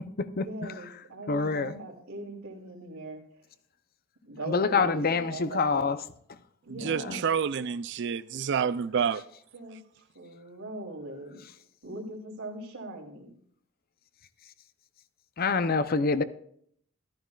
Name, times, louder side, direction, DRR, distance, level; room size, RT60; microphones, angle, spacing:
voice 1, 0.3-3.2 4.2-5.9 6.6-7.4 9.5-9.8 10.1-11.4 11.8-13.4, right 2 dB, 90° right, 3.1 m, -40 dB
voice 2, 1.3-1.7 4.5-6.0 6.8-7.2 15.4-16.2, left 4 dB, 45° left, 0.6 m, -26 dB
voice 3, 6.8-9.2, right 7 dB, 55° right, 0.4 m, -28 dB
14.0 x 13.5 x 2.4 m
head